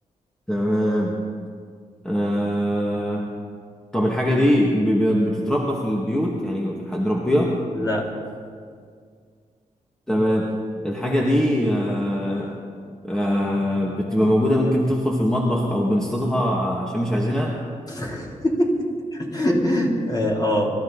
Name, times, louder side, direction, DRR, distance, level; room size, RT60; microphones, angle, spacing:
voice 1, 0.5-1.1 2.0-3.3 3.9-7.6 10.1-10.5 10.8-12.6 13.0-17.6, equal, 5° left, -3 dB, 2.1 m, -22 dB
voice 2, 17.9-20.7, equal, 30° left, -3 dB, 4.2 m, -23 dB
25.5 x 13.5 x 4.2 m, 2.1 s
cardioid pair, 75°, 14 cm